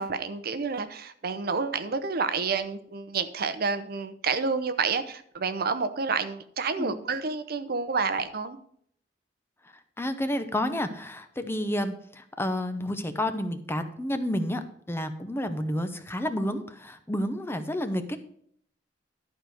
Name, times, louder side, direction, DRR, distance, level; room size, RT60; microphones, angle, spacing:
voice 1, 0.0-8.6, right 4 dB, 55° right, 11 dB, 0.7 m, -29 dB
voice 2, 10.0-18.2, left 1 dB, 15° left, 9 dB, 0.7 m, -30 dB
11.5 x 5.0 x 6.4 m, 0.64 s
head